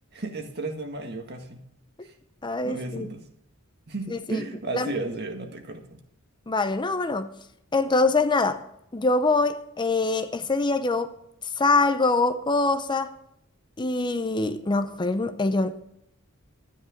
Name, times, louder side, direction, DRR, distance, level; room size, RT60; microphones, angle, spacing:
voice 1, 0.1-1.6 2.0-2.1 2.6-3.2 3.9-6.0, right 2 dB, 50° right, 1.8 m, -34 dB
voice 2, 2.4-3.1 4.1-4.4 4.7-4.9 6.5-7.4 7.7-8.6 8.9-11.1 11.6-13.1 13.8-15.8, left 3 dB, 20° left, 0.6 m, -24 dB
12.5 x 10.0 x 5.1 m
head